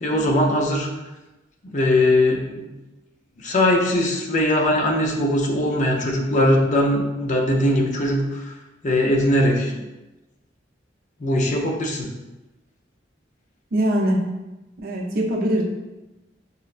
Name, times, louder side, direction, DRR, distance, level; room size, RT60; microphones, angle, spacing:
voice 1, 0.0-0.9 1.7-2.7 3.4-8.5 8.8-9.8 11.2-12.1, left 1 dB, 40° left, 0 dB, 0.5 m, -20 dB
voice 2, 13.7-14.3 14.8-15.6, equal, 55° right, -1 dB, 0.6 m, -22 dB
5.3 x 2.1 x 2.4 m, 1.0 s
head